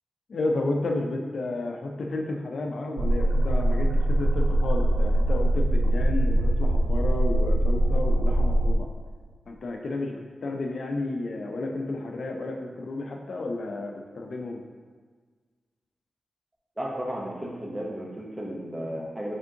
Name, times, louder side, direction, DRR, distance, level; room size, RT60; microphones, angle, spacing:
voice 1, 0.3-8.9 9.5-14.6, left 2 dB, 65° left, 2 dB, 0.4 m, -32 dB
sound 1, 3.0-8.7, right 1 dB, 80° right, 0.4 m, -22 dB
voice 2, 16.8-19.4, equal, 20° right, -3 dB, 0.8 m, -34 dB
5.0 x 3.5 x 2.8 m, 1.5 s
wide cardioid pair, 90°, 0 cm